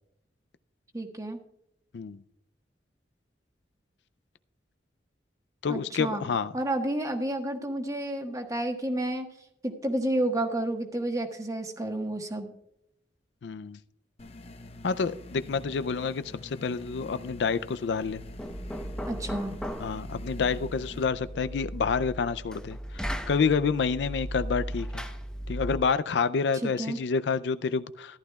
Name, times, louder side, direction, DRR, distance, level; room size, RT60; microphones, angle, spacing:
voice 1, 0.9-1.4 5.7-6.2 6.5-9.3 9.6-12.5 19.1-19.6 26.6-27.0, right 1 dB, 20° right, 1.3 m, -30 dB
voice 2, 5.6-6.5 13.4-13.8 14.8-18.2 19.8-25.0 25.5-28.2, left 5 dB, 75° left, 0.4 m, -28 dB
sound 1, 14.2-21.0, left 2 dB, 35° left, 0.7 m, -46 dB
Knock, 18.0-25.9, equal, 5° left, 0.8 m, -37 dB
14.5 x 11.5 x 2.3 m
head